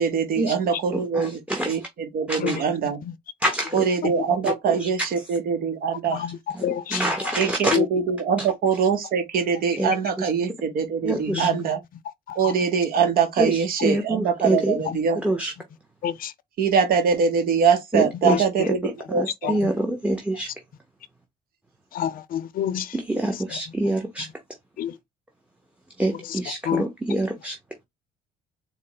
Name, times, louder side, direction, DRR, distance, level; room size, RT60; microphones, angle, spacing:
voice 1, 0.0-3.0 3.7-6.3 7.3-11.8 12.3-15.2 16.6-19.6, right 6 dB, 60° right, 0.8 m, -23 dB
voice 2, 1.2-1.8 2.3-2.6 3.4-3.8 4.8-4.9 6.6-7.8 8.4-8.5 9.8-9.9 11.0-11.5 13.4-14.8 15.2-15.5 17.9-18.4 18.8-20.5 22.9-24.3 26.0-27.6, right 1 dB, 5° right, 0.7 m, -26 dB
voice 3, 6.6-7.0 7.7-7.9 11.3-11.5 12.3-12.5 16.0-16.3 18.3-18.4 19.6-19.7 21.9-22.9 24.8-25.0 26.7-26.9, left 9 dB, 55° left, 0.5 m, -27 dB
4.1 x 2.0 x 3.8 m
cardioid pair, 110°, 17 cm